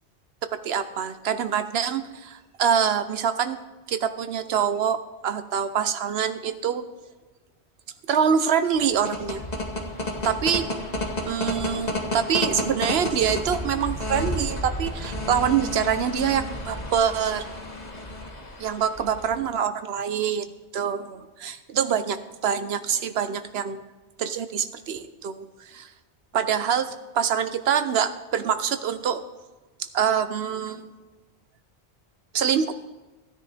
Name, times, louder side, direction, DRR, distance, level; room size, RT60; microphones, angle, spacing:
voice 1, 0.6-3.6 3.9-6.9 8.1-9.4 10.2-10.8 11.3-17.4 18.6-20.5 20.7-23.8 24.2-25.9 26.3-29.2 29.9-30.9 32.3-32.7, right 8 dB, 70° right, 10 dB, 1.0 m, -25 dB
sound 1, 8.7-19.4, left 1 dB, 40° left, 1.6 m, -31 dB
15.5 x 9.6 x 3.4 m, 1.2 s
omnidirectional pair, 1.1 m